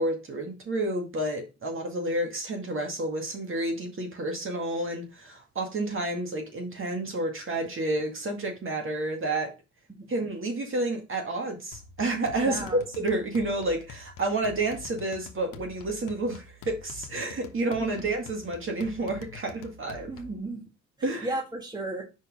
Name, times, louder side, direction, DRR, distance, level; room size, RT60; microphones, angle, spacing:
voice 1, 0.0-9.5 10.1-20.1 21.0-21.3, right 2 dB, 45° right, 2.1 m, -30 dB
sound 1, 11.7-20.4, left 7 dB, 85° left, 0.9 m, -47 dB
voice 2, 12.4-12.8 17.8-18.0 20.1-20.6 21.0-22.0, right 2 dB, 15° right, 1.6 m, -34 dB
5.3 x 4.4 x 4.9 m
cardioid pair, 90°, 30 cm